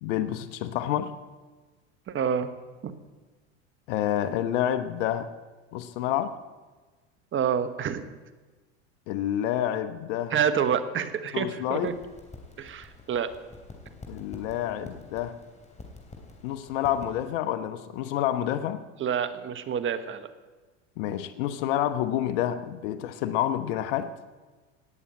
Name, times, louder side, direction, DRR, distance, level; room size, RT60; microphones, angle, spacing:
voice 1, 0.0-1.1 3.9-5.3 5.7-6.3 9.1-10.3 11.3-12.0 14.1-15.3 16.4-18.8 21.0-24.1, left 11 dB, 70° left, 11 dB, 1.1 m, -28 dB
voice 2, 2.1-2.5 2.8-2.9 7.3-8.1 10.3-11.9 12.6-13.3 19.0-20.3, right 8 dB, 30° right, 12 dB, 1.3 m, -28 dB
sound 1, 11.7-17.3, left 3 dB, 20° left, 3.2 m, -47 dB
18.5 x 7.1 x 8.9 m, 1.3 s
hypercardioid pair, 105°, 38 cm